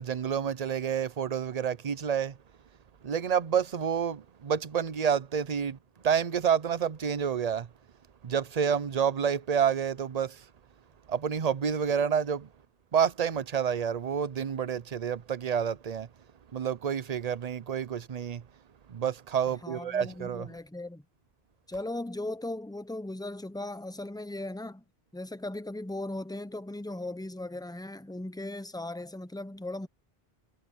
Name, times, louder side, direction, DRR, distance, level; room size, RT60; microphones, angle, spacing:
voice 1, 0.0-2.4 3.0-5.8 6.0-7.7 8.2-10.4 11.1-12.5 12.9-16.1 16.5-18.4 18.9-20.5, right 7 dB, 45° right, 0.7 m, -29 dB
voice 2, 19.6-21.0 21.7-24.8 25.1-29.9, left 1 dB, 5° left, 0.7 m, -37 dB
omnidirectional pair, 1.0 m